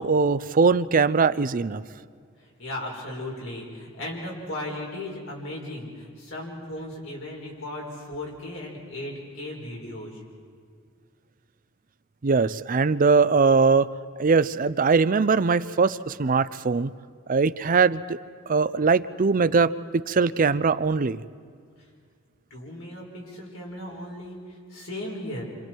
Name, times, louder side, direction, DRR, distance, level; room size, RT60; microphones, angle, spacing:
voice 1, 0.0-1.8 12.2-13.9 14.2-16.9 17.3-18.0 18.5-21.2, right 4 dB, 40° right, 15 dB, 0.5 m, -21 dB
voice 2, 2.6-10.2 22.5-25.4, left 1 dB, 75° left, -1 dB, 4.8 m, -36 dB
29.5 x 26.0 x 4.6 m, 2.1 s
head